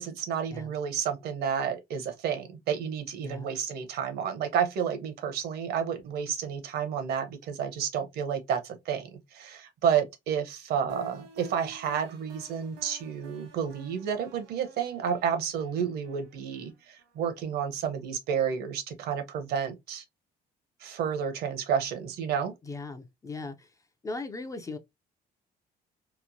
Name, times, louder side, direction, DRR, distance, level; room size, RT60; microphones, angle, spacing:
voice 1, 0.0-20.0 20.8-22.5, right 7 dB, 70° right, 0.8 m, -31 dB
sound 1, 10.9-17.7, right 2 dB, 85° right, 1.2 m, -51 dB
voice 2, 22.6-23.8 24.0-24.8, left 3 dB, 20° left, 0.4 m, -38 dB
3.0 x 2.1 x 2.5 m
cardioid pair, 110°, 17 cm